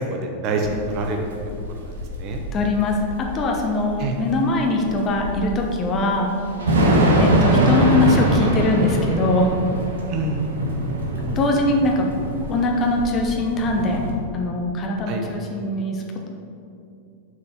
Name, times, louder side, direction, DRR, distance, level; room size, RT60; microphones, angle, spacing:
voice 1, 0.1-1.2 1.7-1.9 2.2-2.4 4.0-4.1 10.1-10.4 15.1-15.2, right 3 dB, 40° right, 3 dB, 1.0 m, -26 dB
Thunder / Rain, 0.6-14.1, right 1 dB, 65° right, 1.2 m, -23 dB
voice 2, 2.5-6.3 7.2-9.5 11.2-12.1 12.5-15.9, left 2 dB, 30° left, 1 dB, 1.1 m, -22 dB
7.0 x 4.7 x 6.6 m, 2.5 s
figure-of-eight pair, 90°, 0 cm